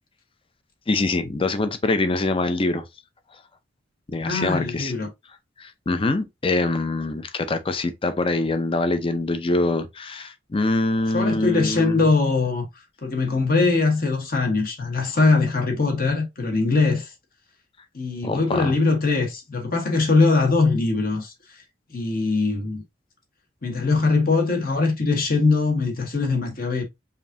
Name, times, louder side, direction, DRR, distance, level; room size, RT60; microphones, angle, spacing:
voice 1, 0.9-2.8 4.1-4.9 5.6-12.0 18.2-18.7, left 2 dB, 30° left, 0.5 m, -24 dB
voice 2, 4.2-5.1 11.1-12.7 13.0-17.1 17.9-21.6 21.9-22.8 23.6-26.8, left 3 dB, 50° left, 1.3 m, -21 dB
5.1 x 2.7 x 2.6 m
head